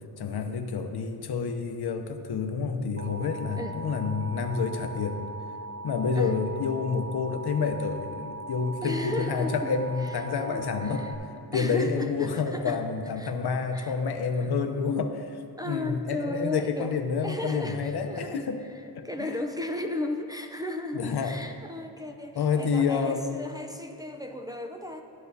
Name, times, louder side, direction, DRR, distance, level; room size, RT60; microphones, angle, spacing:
voice 1, 0.2-5.2 5.8-11.0 11.5-15.4 15.7-18.6 18.9-19.4 20.9-21.3 22.4-23.4, left 5 dB, 70° left, 6 dB, 0.8 m, -29 dB
Alarm, 3.0-11.2, right 2 dB, 30° right, 1.0 m, -40 dB
voice 2, 8.8-9.7 10.0-11.1 11.5-12.8 13.2-13.3 13.7-13.9 14.3-14.5 15.6-25.0, left 1 dB, 10° right, 3 dB, 0.5 m, -35 dB
13.0 x 8.4 x 2.7 m, 3.0 s
cardioid pair, 90°, 40 cm